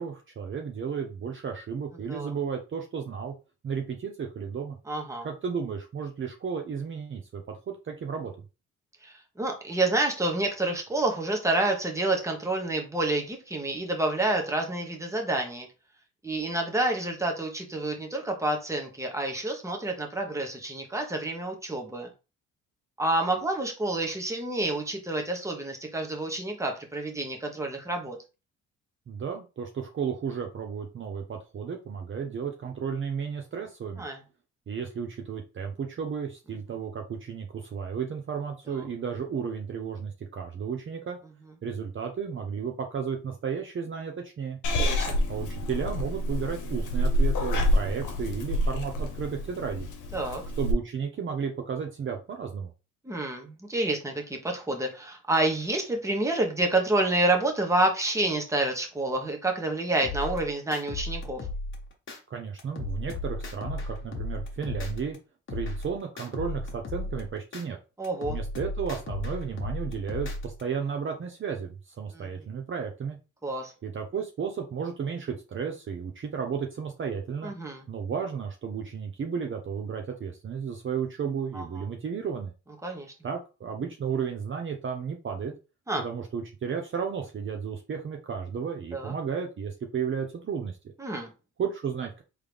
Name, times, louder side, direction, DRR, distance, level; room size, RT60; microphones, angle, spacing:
voice 1, 0.0-3.3 3.6-4.7 5.2-8.3 29.1-34.0 34.7-41.2 41.6-44.6 45.3-49.9 50.6-52.7 62.3-65.2 65.5-67.8 68.3-73.2 73.8-77.5 77.9-82.5 83.2-85.5 86.0-90.8 91.6-92.2, right 6 dB, 40° right, 3 dB, 0.8 m, -33 dB
voice 2, 4.9-5.3 9.0-15.7 16.2-22.1 23.0-28.2 34.0-34.2 38.7-38.8 44.8-45.2 50.1-50.4 53.0-54.1 54.4-61.4 68.0-68.4 72.1-72.3 73.4-73.7 77.4-77.8 81.5-81.6 82.8-83.1 85.9-86.0 88.9-89.1 91.0-91.3, right 2 dB, 10° right, 2 dB, 1.2 m, -28 dB
Purr / Meow, 44.6-50.7, equal, 80° left, 1.0 m, -27 dB
sound 1, 60.0-62.2 62.6-65.2 65.5-67.6 68.0-70.6, left 2 dB, 40° left, 1.4 m, -35 dB
3.8 x 3.3 x 3.4 m, 0.30 s
cardioid pair, 90°, 30 cm